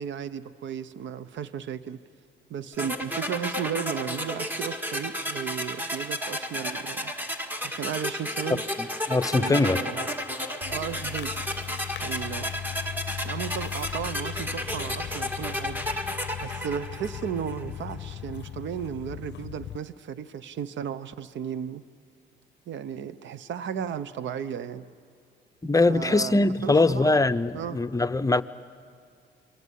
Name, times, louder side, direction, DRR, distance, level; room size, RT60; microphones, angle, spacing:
voice 1, 0.0-2.0 2.5-7.1 7.6-8.6 9.3-10.1 10.7-11.4 12.0-12.5 13.2-15.8 16.4-21.8 22.7-24.8 25.9-26.4 26.6-27.2 27.5-27.8, right 8 dB, 70° right, 0.9 m, -34 dB
sound 1, 2.8-17.7, left 1 dB, 10° right, 1.9 m, -32 dB
voice 2, 8.8-9.8 25.6-28.4, left 2 dB, 15° left, 0.7 m, -22 dB
sound 2, 10.6-19.8, left 12 dB, 60° left, 0.6 m, -38 dB
28.5 x 22.5 x 8.3 m
cardioid pair, 90°, 20 cm